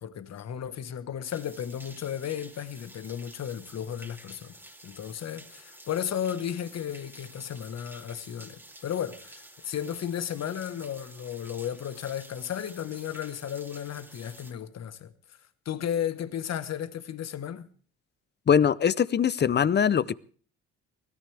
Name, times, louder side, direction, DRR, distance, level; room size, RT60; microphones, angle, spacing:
voice 1, 0.0-4.6 4.8-15.1 15.6-17.7, left 9 dB, 60° left, 1.4 m, -34 dB
sound 1, 1.2-14.5, right 1 dB, 5° right, 2.7 m, -50 dB
voice 2, 18.5-20.1, left 8 dB, 35° left, 0.7 m, -22 dB
24.0 x 17.5 x 3.4 m
cardioid pair, 90°, 30 cm